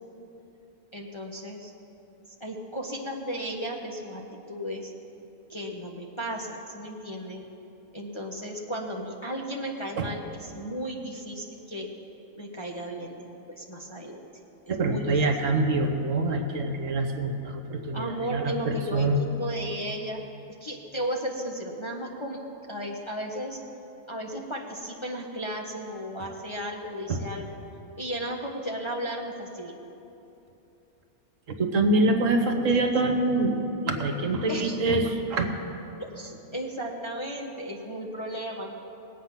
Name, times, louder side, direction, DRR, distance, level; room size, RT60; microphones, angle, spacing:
voice 1, 0.9-1.7 2.4-4.9 5.5-7.4 7.9-11.9 12.4-14.3 14.8-15.1 17.9-20.2 20.6-22.4 22.7-23.6 24.1-27.5 28.0-29.8 32.3-32.9 34.5-35.0 36.0-38.8, equal, 25° left, -1 dB, 0.9 m, -35 dB
voice 2, 14.7-19.2 27.1-27.2 31.6-33.6 33.8-35.5, right 2 dB, 65° right, 5 dB, 1.3 m, -25 dB
19.5 x 8.4 x 5.8 m, 2.9 s
omnidirectional pair, 1.5 m